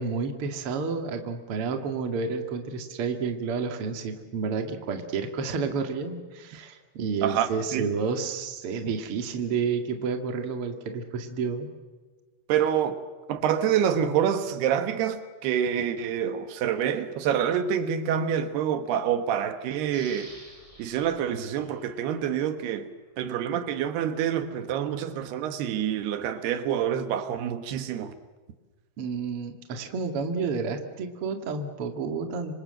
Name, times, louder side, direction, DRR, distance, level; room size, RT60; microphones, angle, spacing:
voice 1, 0.0-11.7 29.0-32.5, right 5 dB, 40° right, 2.5 m, -30 dB
voice 2, 7.2-7.9 12.5-13.0 13.3-20.3 20.8-22.9 23.2-28.1, right 9 dB, 80° right, 3.3 m, -27 dB
sound 1, 19.9-22.5 23.0-23.1, equal, 10° left, 4.6 m, -50 dB
26.5 x 26.0 x 7.8 m
omnidirectional pair, 4.6 m